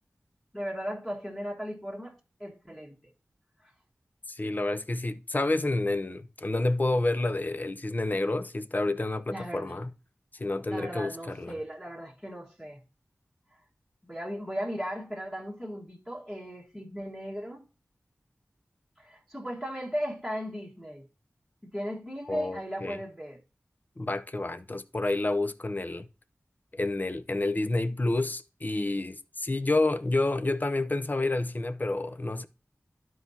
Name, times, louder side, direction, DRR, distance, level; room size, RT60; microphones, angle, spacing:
voice 1, 0.5-3.1 3.6-3.7 9.3-9.8 10.7-12.8 14.0-17.7 19.0-21.1 21.6-23.4, equal, 5° left, 1.6 m, -37 dB
voice 2, 4.3-9.9 10.3-11.6 22.3-23.0 24.0-26.1 26.7-32.5, left 2 dB, 35° left, 0.6 m, -29 dB
12.5 x 4.6 x 2.8 m
wide cardioid pair, 55°, 5 cm